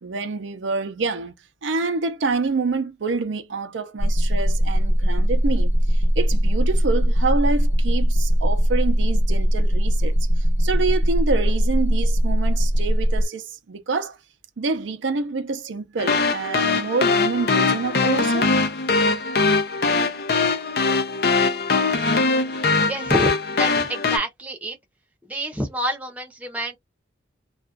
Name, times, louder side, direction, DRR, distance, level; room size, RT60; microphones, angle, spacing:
voice 1, 0.0-1.3 1.6-14.2 14.6-18.5, right 4 dB, 85° right, 0.5 m, -27 dB
sound 1, 4.0-13.3, equal, 70° left, 0.9 m, -20 dB
sound 2, 16.0-24.2, left 4 dB, 55° left, 0.5 m, -21 dB
voice 2, 22.9-24.8 25.2-26.8, equal, 10° right, 0.7 m, -28 dB
2.3 x 2.2 x 2.3 m
head